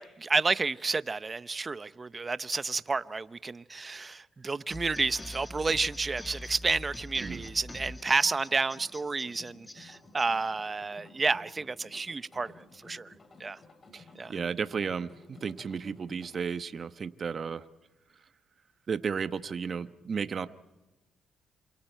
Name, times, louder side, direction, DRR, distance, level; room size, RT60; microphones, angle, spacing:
voice 1, 0.0-12.5 12.8-13.1 13.4-13.6 14.2-14.4, right 4 dB, 30° right, 0.8 m, -30 dB
sound 1, 4.7-10.3, left 2 dB, 15° left, 1.3 m, -44 dB
sound 2, 7.2-16.4, left 3 dB, 35° left, 4.0 m, -55 dB
voice 2, 14.3-17.6 18.9-20.5, right 6 dB, 45° right, 1.1 m, -33 dB
28.0 x 27.5 x 4.5 m
cardioid pair, 90°, 0 cm